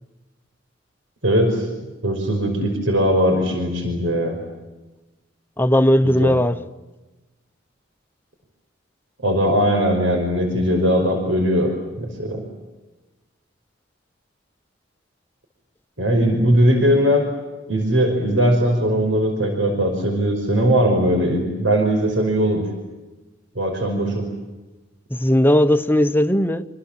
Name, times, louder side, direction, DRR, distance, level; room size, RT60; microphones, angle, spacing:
voice 1, 1.2-1.7 2.0-4.4 6.2-6.4 9.2-11.7 12.0-12.4 16.0-17.3 17.7-22.6 23.6-24.3, equal, 85° right, 5.5 m, -19 dB
voice 2, 5.6-6.6 25.1-26.7, left 1 dB, 10° left, 0.9 m, -17 dB
28.0 x 26.5 x 7.5 m
head